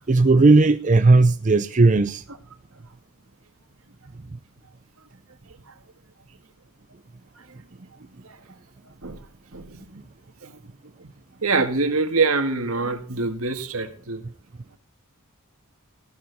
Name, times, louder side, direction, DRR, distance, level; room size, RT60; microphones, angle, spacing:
voice 1, 0.1-2.2, right 3 dB, 35° right, 0.5 m, -16 dB
voice 2, 9.5-10.0 10.4-10.6 11.4-14.2, right 3 dB, 75° right, 1.9 m, -25 dB
14.5 x 11.5 x 4.1 m
head